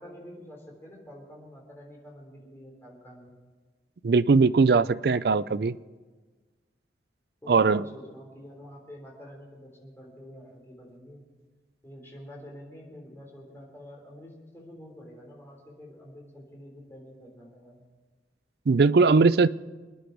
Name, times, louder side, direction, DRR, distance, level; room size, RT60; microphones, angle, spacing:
voice 1, 0.0-3.4 7.4-11.2 11.8-17.8, equal, 15° left, 3.6 m, -47 dB
voice 2, 4.0-5.7 7.5-7.8 18.7-19.5, right 4 dB, 55° right, 0.4 m, -20 dB
26.0 x 10.0 x 4.6 m
head